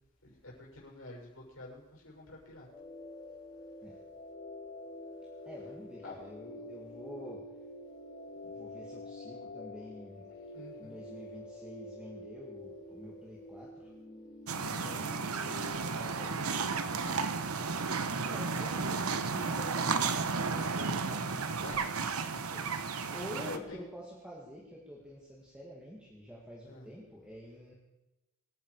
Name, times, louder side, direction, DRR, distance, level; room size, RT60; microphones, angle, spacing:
voice 1, 0.2-2.7 6.0-6.2 10.5-11.0 14.8-15.0 15.6-17.4 21.6-22.2 23.4-23.8 26.6-26.9, left 2 dB, 70° left, -2 dB, 6.7 m, -48 dB
sound 1, 2.7-15.7, left 2 dB, 40° left, 5.3 m, -47 dB
voice 2, 5.5-7.4 8.4-10.3 10.8-13.9 14.5-14.9 15.8-16.5 18.1-21.5 22.3-27.7, equal, 5° right, -4 dB, 2.4 m, -48 dB
sound 2, 14.5-23.6, right 4 dB, 90° right, 1.1 m, -33 dB
24.5 x 10.5 x 5.0 m, 0.99 s
head